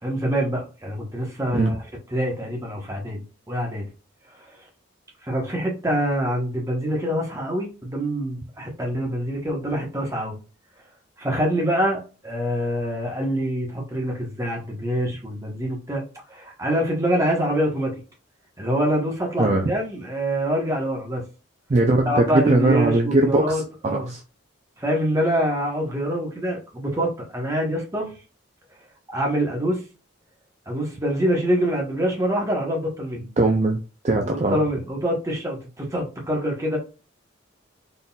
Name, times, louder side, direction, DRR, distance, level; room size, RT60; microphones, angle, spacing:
voice 1, 0.0-1.8 2.1-3.8 4.3-4.6 5.2-10.4 11.2-16.0 16.3-18.0 18.6-21.2 22.1-24.1 24.8-28.1 29.1-29.8 30.7-33.3 34.2-36.8, equal, 15° right, -1 dB, 1.0 m, -25 dB
voice 2, 19.4-19.7 21.7-24.2 33.4-33.8 34.0-34.6, right 2 dB, 35° right, 2 dB, 0.4 m, -20 dB
3.9 x 3.8 x 2.3 m, 0.34 s
head